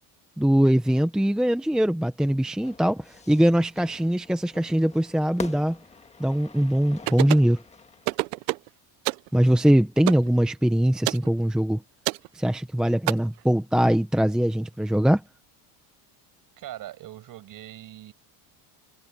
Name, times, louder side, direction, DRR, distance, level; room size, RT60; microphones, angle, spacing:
voice 1, 0.4-5.8 6.2-7.6 9.3-11.8 12.3-15.2, equal, ahead, 0.7 m, -22 dB
Fire / Fireworks, 2.6-8.2, left 4 dB, 15° left, 1.6 m, -44 dB
sound 1, 7.1-7.5 8.1-8.7 9.1-9.3 10.1-10.3 11.1-11.3 12.1-12.3 13.1-13.2, right 27 dB, 85° right, 0.6 m, -26 dB
voice 2, 16.6-18.1, right 13 dB, 45° right, 7.5 m, -41 dB
cardioid pair, 155°, 47 cm